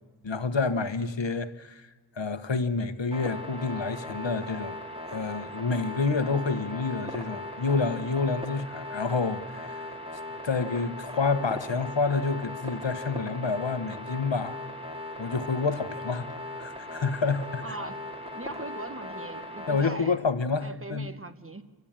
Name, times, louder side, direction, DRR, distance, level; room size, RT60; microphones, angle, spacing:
voice 1, 0.2-1.9 2.2-4.8 5.1-9.8 10.4-14.6 15.2-16.3 16.6-17.6 19.7-21.1, left 4 dB, 65° left, 1.1 m, -28 dB
sound 1, 3.1-19.8, left 1 dB, 10° right, 2.6 m, -39 dB
voice 2, 17.6-18.1 18.3-20.2 20.6-21.6, right 2 dB, 25° right, 1.2 m, -40 dB
29.0 x 12.0 x 8.8 m
wide cardioid pair, 50°, 47 cm